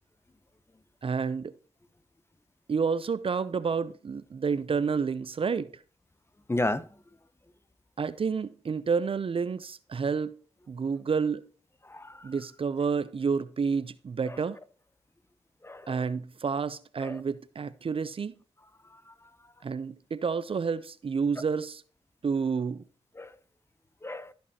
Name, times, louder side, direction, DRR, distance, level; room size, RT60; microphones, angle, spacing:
voice 1, 1.0-1.5 2.7-5.7 8.0-10.3 10.7-11.5 12.2-14.6 15.9-18.3 19.6-21.8 22.2-22.8, right 5 dB, 50° right, 0.5 m, -29 dB
voice 2, 6.5-6.8 11.8-12.3 14.2-14.4 15.6-16.1 17.0-17.2 19.1-19.2 23.2-23.3 24.0-24.3, left 2 dB, 20° left, 0.8 m, -33 dB
14.5 x 5.3 x 2.8 m
supercardioid pair, 40°, 12 cm